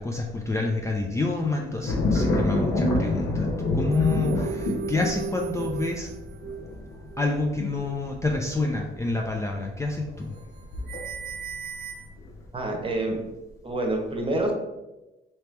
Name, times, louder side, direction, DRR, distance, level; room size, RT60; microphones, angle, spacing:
voice 1, 0.0-3.5 3.7-6.1 7.2-10.4, left 3 dB, 15° left, 0 dB, 0.4 m, -28 dB
sound 1, 1.8-11.5 11.9-12.4, left 2 dB, 85° left, 0.9 m, -28 dB
sound 2, 3.9-6.7 7.0-7.3 7.8-8.0 8.5-8.6 10.4-10.6 10.9-12.1, right 7 dB, 55° right, 0.5 m, -36 dB
voice 2, 12.5-13.2 13.6-14.5, right 2 dB, 25° right, 2 dB, 1.1 m, -27 dB
3.3 x 2.9 x 4.4 m, 1.0 s
cardioid pair, 90°, 20 cm